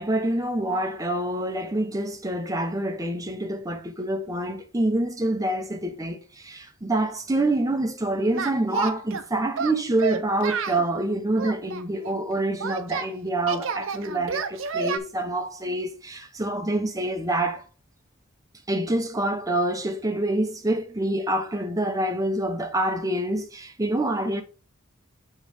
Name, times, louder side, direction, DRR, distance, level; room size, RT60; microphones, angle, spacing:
voice 1, 0.0-17.6 18.7-24.4, right 1 dB, 15° right, 0.9 m, -26 dB
Singing, 8.3-9.2 9.6-10.8 11.4-13.1 13.5-15.0, right 5 dB, 70° right, 0.7 m, -30 dB
7.0 x 3.2 x 4.9 m
head